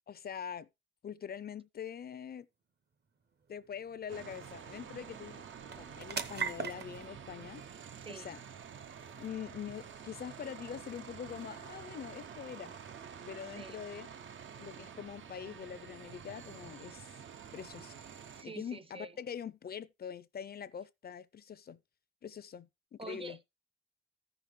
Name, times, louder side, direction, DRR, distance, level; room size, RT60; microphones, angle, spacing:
voice 1, 0.1-0.7 1.0-2.5 3.5-7.6 8.1-8.4 9.2-12.8 13.3-14.1 14.6-17.1 17.5-18.0 18.4-21.8 22.2-23.4, left 8 dB, 50° left, 0.4 m, -44 dB
sound 1, 2.7-17.6, right 5 dB, 55° right, 1.1 m, -48 dB
sound 2, 4.1-18.4, right 7 dB, 70° right, 0.7 m, -49 dB
voice 2, 7.9-8.3 13.6-13.8 18.3-19.1 23.0-23.5, right 4 dB, 25° right, 0.6 m, -47 dB
14.5 x 5.9 x 3.1 m
wide cardioid pair, 140°, 21 cm